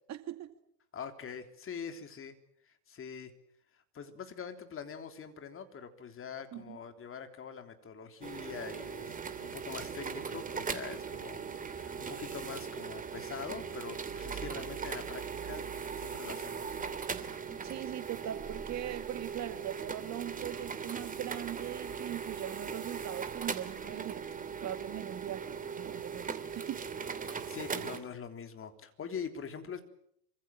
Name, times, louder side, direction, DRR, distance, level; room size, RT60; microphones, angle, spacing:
voice 1, 0.1-0.5 6.5-6.8 14.4-14.6 17.6-24.2 24.6-26.8, right 12 dB, 35° right, 9 dB, 2.3 m, -41 dB
voice 2, 0.9-2.4 2.6-3.3 3.9-15.7 16.0-16.9 27.2-29.8, left 6 dB, 25° left, 7 dB, 3.5 m, -44 dB
sound 1, 8.2-28.0, right 6 dB, 15° right, 2.8 m, -39 dB
27.0 x 25.0 x 7.7 m, 0.71 s
hypercardioid pair, 100°, 48 cm